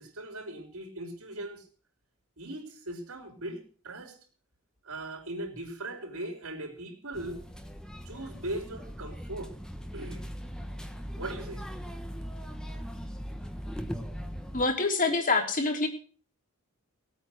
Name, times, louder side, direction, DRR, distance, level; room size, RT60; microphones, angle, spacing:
voice 1, 0.0-1.6 2.4-4.2 4.8-7.4 8.0-9.5 9.9-10.2 11.2-11.6, right 1 dB, 75° right, 2 dB, 4.4 m, -39 dB
sound 1, 7.1-14.6, equal, 5° left, 1.3 m, -39 dB
voice 2, 14.5-15.9, left 3 dB, 40° left, 3 dB, 3.4 m, -26 dB
19.0 x 8.8 x 6.6 m, 0.41 s
head